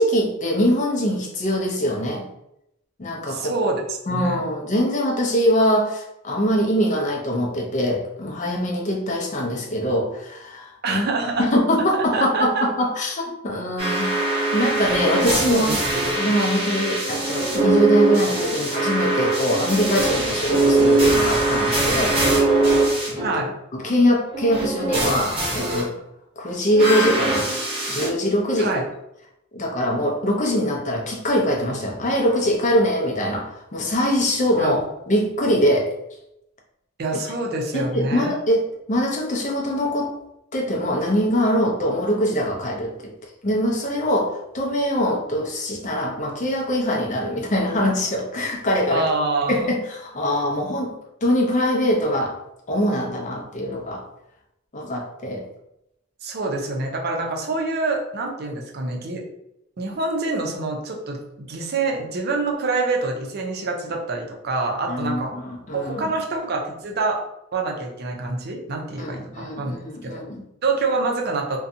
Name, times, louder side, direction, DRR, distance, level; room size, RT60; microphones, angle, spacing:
voice 1, 0.0-2.2 3.0-3.5 4.1-11.0 11.4-14.2 14.5-15.8 16.2-22.2 23.1-23.2 23.7-25.9 26.4-27.5 27.9-28.7 29.5-34.8 35.1-35.9 37.7-40.1 40.5-43.1 43.4-49.1 49.5-50.9 51.2-52.4 52.7-54.0 54.7-55.4 64.9-66.1 69.0-70.4, equal, 40° left, 0 dB, 0.5 m, -23 dB
voice 2, 3.3-3.8 4.1-4.4 10.8-11.5 11.9-12.7 15.4-16.0 23.2-23.5 28.6-28.8 34.6-34.8 37.0-38.3 48.9-49.7 56.2-59.2 59.8-65.3 65.7-67.2 67.5-69.7 70.0-70.2 70.6-71.6, right 3 dB, 50° right, 1 dB, 0.5 m, -26 dB
sound 1, 13.8-23.4 24.3-25.8 26.7-28.1, right 2 dB, 30° right, 0.9 m, -21 dB
2.5 x 2.2 x 2.6 m, 0.83 s
head